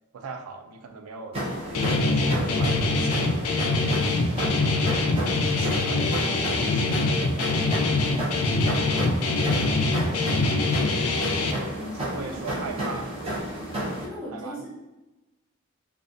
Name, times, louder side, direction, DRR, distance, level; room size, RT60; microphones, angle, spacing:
voice 1, 0.1-1.4 1.7-5.1 5.4-7.7 8.6-10.8 11.7-13.7 14.3-14.6, right 4 dB, 85° right, 6 dB, 0.3 m, -40 dB
sound 1, 1.3-14.0, right 1 dB, 25° right, 0.5 m, -32 dB
Guitar, 1.7-11.5, left 3 dB, 85° left, 0.3 m, -24 dB
voice 2, 11.6-12.5 14.0-14.7, equal, 65° right, -9 dB, 1.3 m, -39 dB
2.4 x 2.3 x 2.4 m, 1.1 s
head